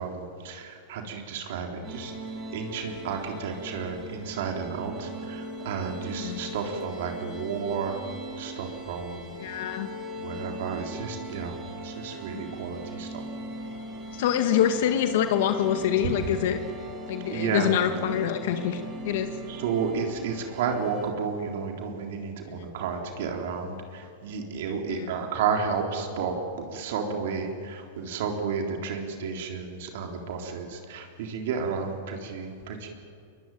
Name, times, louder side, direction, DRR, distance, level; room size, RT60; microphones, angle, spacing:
voice 1, 0.0-2.1 2.5-8.0 8.4-9.3 10.1-13.2 16.0-16.1 17.2-17.7 19.5-32.9, right 6 dB, 70° right, 3 dB, 3.8 m, -32 dB
sound 1, 1.8-21.1, right 1 dB, 30° right, 5.9 m, -39 dB
voice 2, 9.4-9.9 12.1-12.4 14.1-16.6 17.1-19.3 24.9-25.1, left 10 dB, 70° left, 7 dB, 1.9 m, -26 dB
22.5 x 22.0 x 9.4 m, 2.5 s
hypercardioid pair, 120°, 0 cm